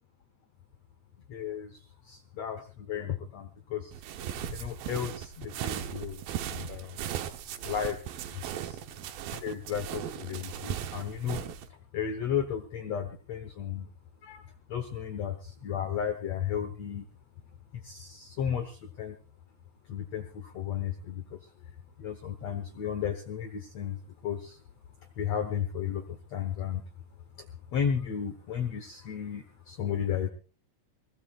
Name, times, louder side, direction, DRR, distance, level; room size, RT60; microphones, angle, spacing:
voice 1, 1.3-4.0 4.5-7.0 7.6-8.0 8.3-8.8 9.3-11.4 11.9-13.9 14.2-17.0 17.7-19.2 19.9-21.4 22.0-24.6 25.2-26.8 27.4-27.5 27.7-30.3, left 8 dB, 70° left, 8 dB, 1.6 m, -34 dB
sound 1, 3.9-11.7, right 10 dB, 70° right, 2.6 m, -37 dB
22.0 x 20.0 x 2.4 m, 0.35 s
omnidirectional pair, 4.5 m